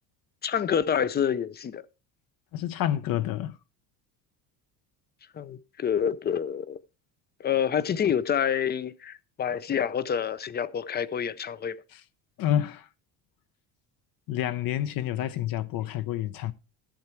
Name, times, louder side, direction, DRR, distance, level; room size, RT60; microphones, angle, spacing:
voice 1, 0.4-1.8 5.3-6.8 7.4-11.8, left 8 dB, 25° left, 0.5 m, -27 dB
voice 2, 2.5-3.6 11.9-12.0 12.4-12.9 14.3-16.5, left 11 dB, 55° left, 0.8 m, -28 dB
11.5 x 7.3 x 4.4 m
cardioid pair, 140°, 40 cm